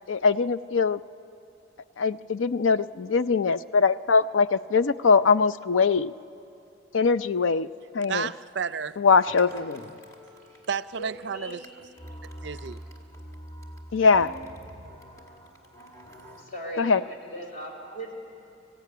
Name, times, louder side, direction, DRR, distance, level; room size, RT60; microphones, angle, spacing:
voice 1, 0.1-1.0 2.0-6.1 6.9-7.7 7.9-8.3 9.0-9.8 13.9-14.3 16.8-17.0, left 5 dB, 85° left, 15 dB, 0.5 m, -22 dB
voice 2, 8.1-9.0 10.7-11.7 12.4-12.8, right 6 dB, 60° right, 15 dB, 0.4 m, -31 dB
sound 1, 9.2-16.4, equal, 15° left, 1.9 m, -45 dB
voice 3, 10.9-11.6 16.4-18.2, right 1 dB, 45° left, 1 dB, 3.9 m, -38 dB
25.5 x 15.5 x 9.3 m, 2.8 s
head